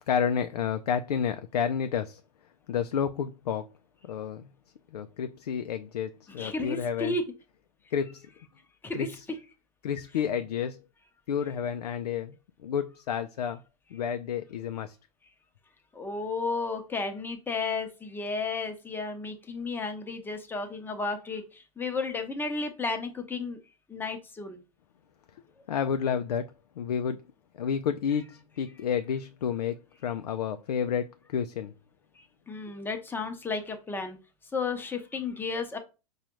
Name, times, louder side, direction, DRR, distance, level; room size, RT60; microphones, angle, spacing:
voice 1, 0.1-2.2 2.7-3.7 4.0-4.5 4.9-7.1 7.9-8.3 8.9-9.3 9.8-10.8 11.3-12.3 12.6-13.6 13.9-15.0 25.7-26.5 26.8-27.2 27.5-29.8 30.0-31.7, left 7 dB, 75° left, 0.4 m, -30 dB
voice 2, 6.4-7.2 8.8-9.1 15.9-23.6 23.9-24.6 32.2-34.2 34.5-35.8, left 4 dB, 10° left, 0.7 m, -33 dB
4.9 x 2.3 x 3.0 m
hypercardioid pair, 105°, 20 cm